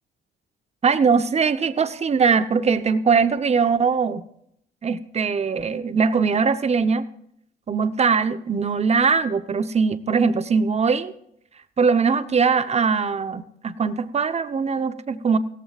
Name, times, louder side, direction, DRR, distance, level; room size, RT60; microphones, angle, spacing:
voice 1, 0.8-4.3 4.8-7.0 7.7-11.1 11.8-15.4, right 5 dB, 35° right, 12 dB, 0.9 m, -21 dB
16.5 x 14.5 x 2.5 m, 0.72 s
cardioid pair, 90°, 20 cm